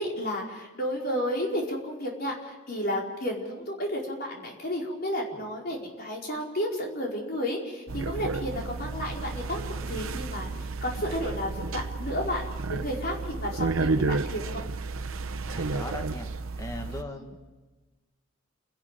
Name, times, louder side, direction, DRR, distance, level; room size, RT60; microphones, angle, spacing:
voice 1, 0.0-10.5 10.8-12.4 12.7-14.7 16.9-17.0, equal, 50° left, -1 dB, 4.9 m, -32 dB
sound 1, 7.9-17.0, right 3 dB, 85° right, 0.9 m, -32 dB
voice 2, 15.5-16.3 16.6-17.6, left 1 dB, 15° left, 4 dB, 1.6 m, -39 dB
29.0 x 11.5 x 9.1 m, 1.2 s
head